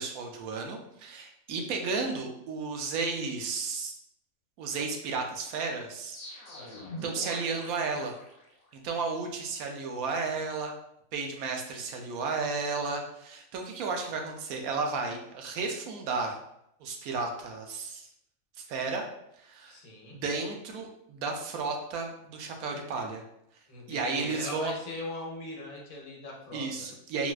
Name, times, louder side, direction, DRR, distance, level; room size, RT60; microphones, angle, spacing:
voice 1, 0.0-3.9 4.6-6.2 7.0-8.1 8.8-10.7 11.1-16.4 16.8-18.1 18.6-19.0 19.4-19.8 20.1-23.2 23.9-24.7 26.5-27.3, right 4 dB, 85° right, 2 dB, 1.1 m, -33 dB
sound 1, 6.1-8.9, left 1 dB, 45° left, 0.5 m, -44 dB
voice 2, 6.5-7.0 19.7-20.2 23.7-26.7, left 2 dB, 75° left, -1 dB, 1.2 m, -40 dB
4.1 x 2.2 x 2.3 m, 0.78 s
omnidirectional pair, 1.5 m